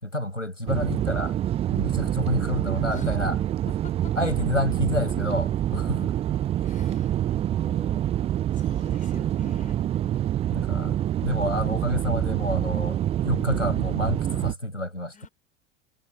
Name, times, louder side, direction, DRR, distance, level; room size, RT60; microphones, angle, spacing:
voice 1, 0.0-1.3 1.7-3.4 4.2-6.1 10.5-15.3, left 1 dB, 90° left, 5.9 m, -29 dB
sound 1, 0.7-14.5, right 11 dB, 20° right, 0.4 m, -26 dB
voice 2, 3.7-4.1 6.6-7.2 7.6-8.0 8.5-9.8 15.1-15.3, left 7 dB, 20° left, 4.3 m, -46 dB
figure-of-eight pair, 80°, 36 cm